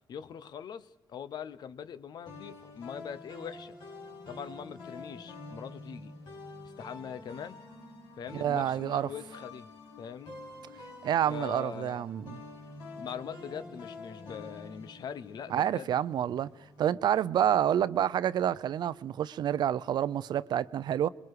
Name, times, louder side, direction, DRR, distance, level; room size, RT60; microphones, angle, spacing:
voice 1, 0.1-3.8 4.3-6.1 6.8-7.6 8.2-9.7 10.0-10.4 11.3-12.0 13.0-15.9, left 7 dB, 65° left, 0.9 m, -42 dB
sound 1, 2.3-17.0, left 2 dB, 90° left, 4.3 m, -47 dB
voice 2, 8.3-9.1 11.0-12.4 15.5-16.5 16.8-21.1, right 10 dB, 70° right, 0.6 m, -28 dB
27.5 x 21.5 x 4.9 m
cardioid pair, 100°, 8 cm